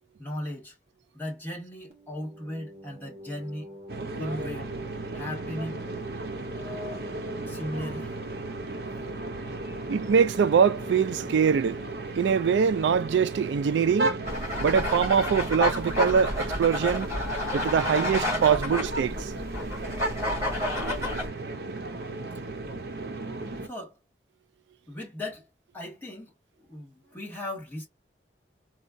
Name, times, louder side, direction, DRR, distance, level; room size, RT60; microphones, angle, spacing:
voice 1, 0.2-0.7 1.1-3.8 4.2-4.8 5.1-5.8 6.5-7.0 7.4-8.2 23.6-24.0 24.9-25.5 25.7-27.9, left 1 dB, 10° left, 1.7 m, -37 dB
sound 1, 1.9-13.3, left 1 dB, 40° right, 1.1 m, -46 dB
sound 2, 3.9-23.7, right 2 dB, 60° right, 0.7 m, -35 dB
voice 2, 9.9-11.8 12.1-14.1 14.6-17.1 17.5-19.3, right 7 dB, 85° right, 0.3 m, -23 dB
sound 3, 14.2-21.3, left 1 dB, 20° right, 2.6 m, -30 dB
4.2 x 2.3 x 2.5 m
head